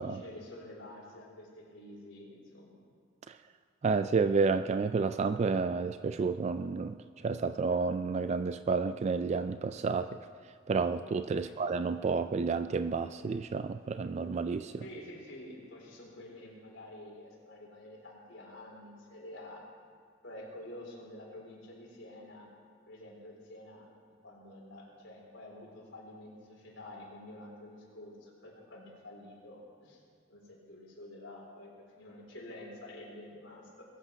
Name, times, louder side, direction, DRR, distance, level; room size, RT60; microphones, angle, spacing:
voice 1, 0.0-2.8 11.3-11.5 14.8-19.6 20.2-22.5 22.9-30.0 30.3-33.9, left 1 dB, 70° left, -3 dB, 4.1 m, -49 dB
voice 2, 3.8-7.0 7.2-10.2 10.7-14.7, right 4 dB, 35° right, 11 dB, 0.3 m, -30 dB
21.0 x 8.2 x 5.8 m, 2.2 s
head